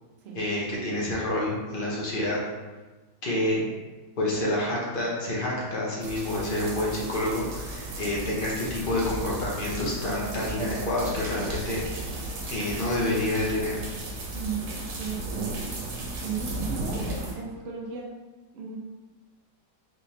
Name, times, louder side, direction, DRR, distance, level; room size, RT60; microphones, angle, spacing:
voice 1, 0.3-2.4 3.2-3.6 4.2-11.8 12.5-13.8, left 1 dB, 40° left, -5 dB, 0.9 m, -28 dB
sound 1, 6.0-17.3, right 2 dB, 75° right, 1.4 m, -35 dB
voice 2, 14.3-15.9 16.2-18.1 18.5-18.8, right 6 dB, 55° right, -1 dB, 0.7 m, -36 dB
3.9 x 3.3 x 2.9 m, 1.2 s
omnidirectional pair, 1.8 m